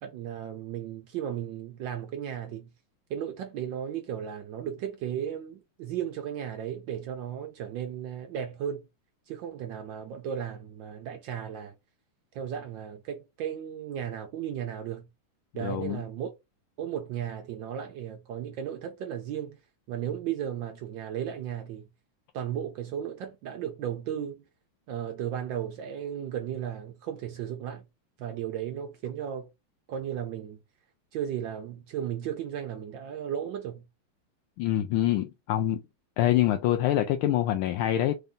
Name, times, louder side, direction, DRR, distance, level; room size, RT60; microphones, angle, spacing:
voice 1, 0.0-2.7 3.1-8.9 9.3-11.7 12.3-15.1 15.5-16.3 16.8-19.6 19.9-21.9 22.3-24.4 24.9-27.8 28.2-29.5 29.9-30.6 31.1-33.8, right 9 dB, 75° right, 1.2 m, -35 dB
voice 2, 15.5-16.0 34.6-35.8 36.2-38.2, left 13 dB, 80° left, 1.4 m, -25 dB
4.1 x 2.6 x 3.5 m
omnidirectional pair, 2.3 m